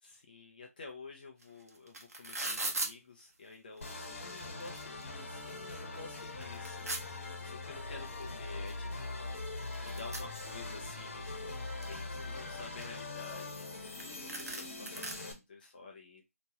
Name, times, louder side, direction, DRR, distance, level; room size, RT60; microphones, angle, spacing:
voice 1, 0.0-13.7 14.1-16.2, left 4 dB, 35° left, 1 dB, 0.7 m, -51 dB
sound 1, 1.4-1.5 1.7-2.9 3.8-3.9 4.2-5.0 5.5-5.6 5.9-7.0 8.2-8.3 8.7-8.8 9.0-10.9 11.3-12.0 12.5-13.7 14.0-14.1 14.3-15.1, right 2 dB, 75° right, 1.0 m, -39 dB
sound 2, 3.8-15.3, left 3 dB, 50° left, 1.3 m, -42 dB
3.4 x 3.0 x 2.7 m, 0.22 s
figure-of-eight pair, 160°, 8 cm